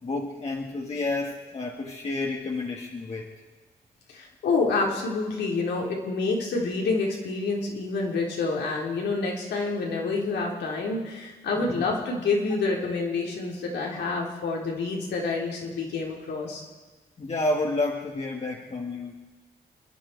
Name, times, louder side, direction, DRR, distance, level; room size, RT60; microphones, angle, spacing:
voice 1, 0.0-3.3 11.6-11.8 17.2-19.4, left 2 dB, 40° left, -1 dB, 1.9 m, -30 dB
voice 2, 4.1-16.6, left 3 dB, 90° left, -1 dB, 3.6 m, -28 dB
28.5 x 10.5 x 4.7 m, 1.3 s
cardioid pair, 80°, 17 cm